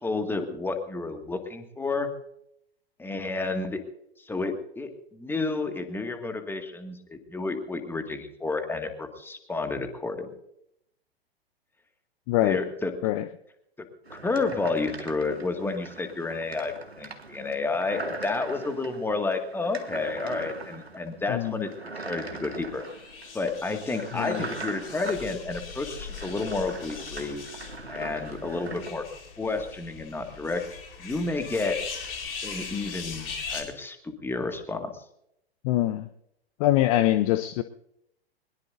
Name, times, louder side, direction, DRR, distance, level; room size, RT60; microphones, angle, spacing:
voice 1, 0.0-2.1 3.0-3.8 4.2-10.3 12.4-12.9 13.8-13.9 14.2-21.7 22.0-22.8 23.3-27.4 27.9-29.1 29.4-30.6 31.0-31.8 32.4-35.0, left 3 dB, 5° left, 6 dB, 2.0 m, -30 dB
voice 2, 12.3-12.6 13.0-13.3 21.3-21.6 24.1-24.4 35.6-36.1 36.6-37.6, left 14 dB, 35° left, 13 dB, 0.7 m, -24 dB
sound 1, 14.0-28.9, right 3 dB, 85° right, 2.1 m, -41 dB
sound 2, 22.8-33.6, left 5 dB, 65° left, 4.5 m, -40 dB
21.5 x 21.5 x 2.7 m, 0.77 s
figure-of-eight pair, 105°, 31 cm